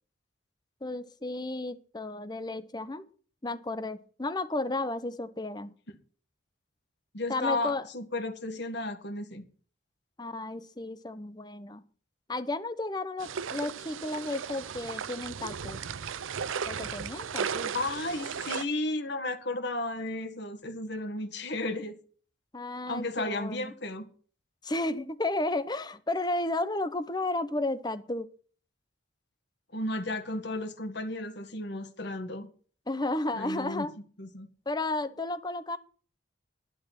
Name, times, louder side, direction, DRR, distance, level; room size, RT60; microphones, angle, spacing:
voice 1, 0.8-3.0 3.4-5.7 7.3-7.8 10.2-11.8 12.3-15.8 16.7-17.7 22.5-23.7 24.6-28.3 32.9-33.9 34.7-35.8, left 2 dB, 20° left, 0.8 m, -33 dB
voice 2, 7.1-9.4 17.7-21.9 22.9-24.1 29.7-32.5 33.3-33.9 34.2-34.5, left 2 dB, 55° left, 1.7 m, -33 dB
sound 1, 13.2-18.7, right 7 dB, 75° right, 0.6 m, -35 dB
11.0 x 10.5 x 6.0 m
head